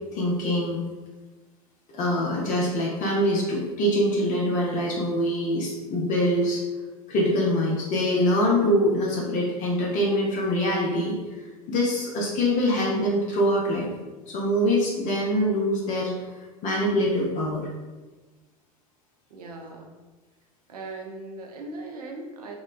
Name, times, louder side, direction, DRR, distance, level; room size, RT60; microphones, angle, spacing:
voice 1, 0.1-0.8 1.9-6.6 7.1-11.2 11.7-13.9 14.3-16.1 16.6-17.6, equal, 40° left, -3 dB, 0.6 m, -24 dB
voice 2, 19.3-20.0 20.7-22.6, right 2 dB, 80° right, 1 dB, 0.5 m, -39 dB
2.9 x 2.1 x 2.4 m, 1.2 s
figure-of-eight pair, 75°, 19 cm